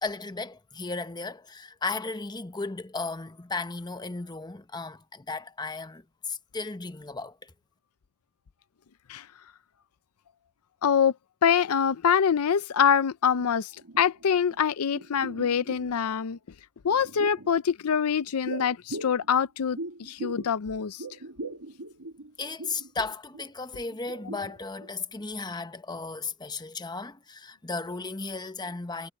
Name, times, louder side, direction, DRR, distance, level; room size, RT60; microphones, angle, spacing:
voice 1, 0.0-7.5 22.4-29.1, left 3 dB, 20° left, 0.9 m, -35 dB
voice 2, 10.8-11.1 11.4-13.7 14.0-16.4 16.8-21.0, left 7 dB, 75° left, 0.5 m, -25 dB
sound 1, 13.4-13.5 13.8-14.6 14.9-16.1 16.8-17.5 18.4-20.5 20.8-22.9 23.3-23.5 23.9-24.9 25.2-25.3, right 2 dB, 85° right, 2.5 m, -40 dB
head